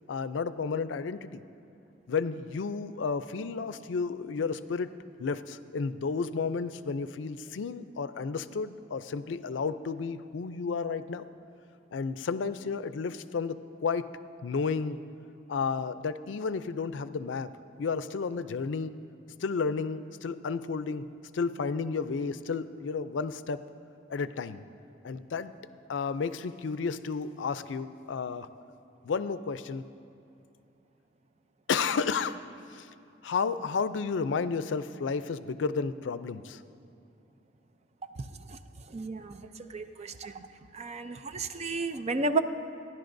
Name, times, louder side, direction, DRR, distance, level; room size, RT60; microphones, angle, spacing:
voice 1, 0.1-1.4 2.1-4.9 5.2-11.2 11.9-14.1 14.4-15.0 15.5-17.5 17.8-19.0 19.4-21.0 21.3-23.6 24.1-24.6 25.0-25.5 25.9-28.5 29.0-29.9 31.7-32.4 32.7-32.9 33.2-36.6, left 5 dB, 80° left, 13 dB, 0.4 m, -32 dB
voice 2, 38.9-39.4 39.7-40.3 40.7-42.4, right 3 dB, 35° right, 9 dB, 0.5 m, -32 dB
28.5 x 11.0 x 2.6 m, 2.6 s
head